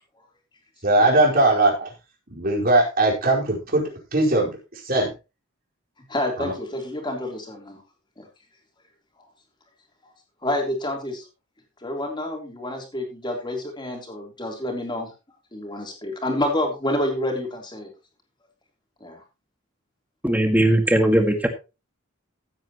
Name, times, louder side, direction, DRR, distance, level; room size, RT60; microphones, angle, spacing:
voice 1, 0.8-1.9 2.3-5.1 6.4-6.5, right 2 dB, 45° right, -1 dB, 4.7 m, -20 dB
voice 2, 6.1-7.8 8.2-8.3 9.2-9.3 10.0-10.1 10.4-11.2 11.8-15.1 15.5-17.9 19.0-19.2, left 1 dB, 20° left, 2 dB, 3.5 m, -28 dB
voice 3, 20.2-21.5, right 1 dB, 10° right, 6 dB, 1.8 m, -19 dB
15.5 x 9.0 x 3.0 m, 0.28 s
head